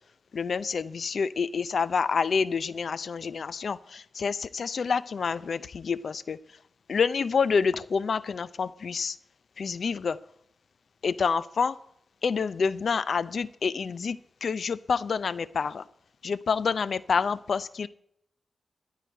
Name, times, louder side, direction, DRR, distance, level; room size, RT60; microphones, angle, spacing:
voice 1, 0.3-6.4 6.9-9.2 9.6-10.2 11.0-11.8 12.2-15.8 16.2-17.9, left 5 dB, 65° left, 18 dB, 0.5 m, -28 dB
13.0 x 4.9 x 8.8 m, 0.74 s
cardioid pair, 80°, 0 cm